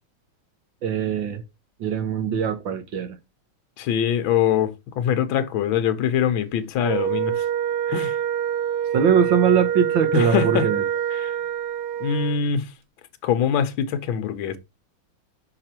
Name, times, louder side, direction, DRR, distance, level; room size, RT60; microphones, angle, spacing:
voice 1, 0.8-1.4 1.8-3.2 8.9-10.8, right 7 dB, 70° right, 1.6 m, -21 dB
voice 2, 3.8-7.4 7.9-8.2 10.1-10.7 11.2-11.3 12.0-12.7 13.2-14.6, left 8 dB, 75° left, 1.5 m, -23 dB
Wind instrument woodwind instrument, 6.8-12.4, right 10 dB, 85° right, 1.6 m, -25 dB
5.8 x 4.9 x 4.4 m
omnidirectional pair, 2.3 m